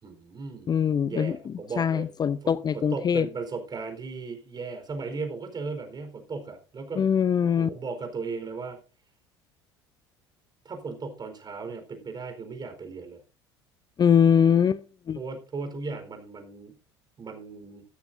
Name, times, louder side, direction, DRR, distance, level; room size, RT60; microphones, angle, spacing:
voice 1, 0.0-0.7 1.1-2.1 2.4-7.1 7.4-8.8 10.6-13.2 15.2-16.7 17.2-17.8, right 4 dB, 30° right, 6 dB, 4.2 m, -36 dB
voice 2, 0.7-1.3 1.8-3.3 7.0-7.7 14.0-14.8 15.1-15.2, left 8 dB, 30° left, 17 dB, 0.6 m, -22 dB
16.0 x 13.0 x 2.7 m, 0.32 s
figure-of-eight pair, 65°, 14 cm